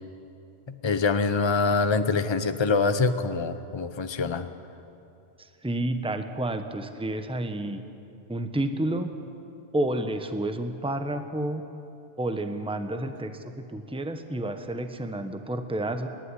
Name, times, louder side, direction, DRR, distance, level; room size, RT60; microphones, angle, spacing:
voice 1, 0.7-4.5, left 4 dB, 25° left, 10 dB, 0.8 m, -25 dB
voice 2, 5.4-7.8 8.3-9.1 9.7-11.6 12.2-16.1, right 1 dB, 5° right, 7 dB, 1.0 m, -30 dB
29.5 x 12.0 x 9.8 m, 2.7 s
omnidirectional pair, 1.2 m